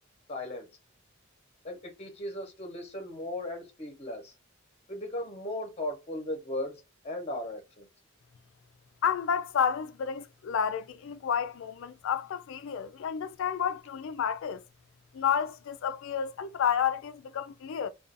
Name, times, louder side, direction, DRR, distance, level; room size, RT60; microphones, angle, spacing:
voice 1, 0.3-0.7 1.6-4.3 4.9-6.7 7.0-7.9, left 1 dB, 30° left, 0.8 m, -37 dB
voice 2, 9.0-14.6 15.1-17.9, left 7 dB, 70° left, 0.3 m, -30 dB
2.5 x 2.3 x 2.4 m
head